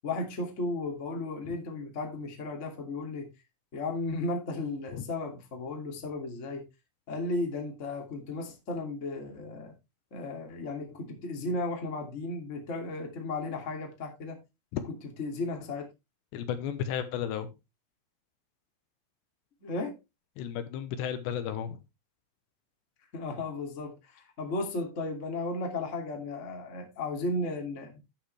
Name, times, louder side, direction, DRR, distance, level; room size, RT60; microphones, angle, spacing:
voice 1, 0.0-3.3 3.7-6.7 7.1-9.7 10.1-14.4 14.9-15.9 19.6-20.0 23.1-28.0, left 2 dB, 25° left, 1.9 m, -35 dB
voice 2, 16.3-17.5 20.4-21.8, left 9 dB, 75° left, 3.1 m, -33 dB
12.0 x 8.1 x 3.2 m
omnidirectional pair, 5.2 m